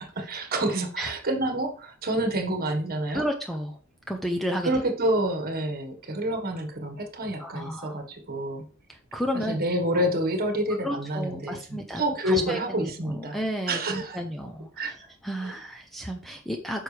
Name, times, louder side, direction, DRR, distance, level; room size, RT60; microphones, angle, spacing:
voice 1, 0.1-3.3 4.6-8.6 9.3-13.4 13.7-14.2 14.8-14.9 15.4-15.5, right 1 dB, 45° right, 5 dB, 1.6 m, -28 dB
voice 2, 3.1-3.7 4.1-4.7 7.4-7.9 9.1-9.6 10.8-14.9 15.2-16.8, equal, ahead, 3 dB, 0.7 m, -32 dB
9.1 x 6.1 x 3.4 m, 0.40 s
head